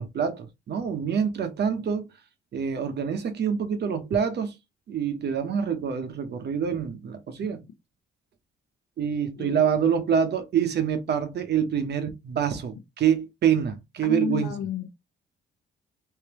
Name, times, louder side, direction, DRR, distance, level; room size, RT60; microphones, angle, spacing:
voice 1, 0.0-2.1 2.5-4.5 4.9-7.6 9.0-14.5, right 7 dB, 55° right, 1.0 m, -26 dB
voice 2, 14.0-14.9, left 7 dB, 60° left, 0.8 m, -31 dB
3.4 x 2.8 x 3.0 m
cardioid pair, 90°, 20 cm